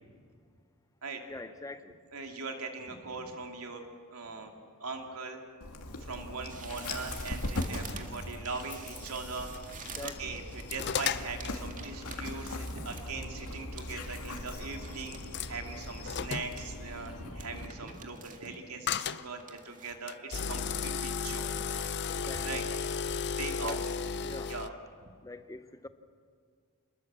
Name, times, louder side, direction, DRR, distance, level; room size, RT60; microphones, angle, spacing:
voice 1, 1.3-1.9 10.0-10.3 22.1-22.5 23.6-23.8 24.2-24.5 25.2-25.9, left 2 dB, 15° left, 11 dB, 0.6 m, -43 dB
voice 2, 2.1-3.8 4.1-4.5 4.8-5.4 6.0-21.5 22.4-22.6 23.4-23.8 24.5-24.8 25.0-25.1, right 4 dB, 70° right, 3 dB, 2.8 m, -40 dB
Dog, 5.6-17.7, left 1 dB, 75° left, 2.6 m, -40 dB
sound 1, 6.5-15.5 15.7-16.7 17.1-17.2 17.4-18.6 18.9-20.1 20.5-22.0 22.3-23.3 23.7-23.8, right 5 dB, 35° right, 2.0 m, -49 dB
sound 2, 7.8-8.0 8.6-8.7 9.5-9.9 10.3-11.6 13.1-13.2 13.8-14.0 15.1-15.5 16.1-16.6 18.9-19.3 20.1-24.7, left 6 dB, 50° left, 0.7 m, -34 dB
28.0 x 20.5 x 7.5 m, 2.1 s
head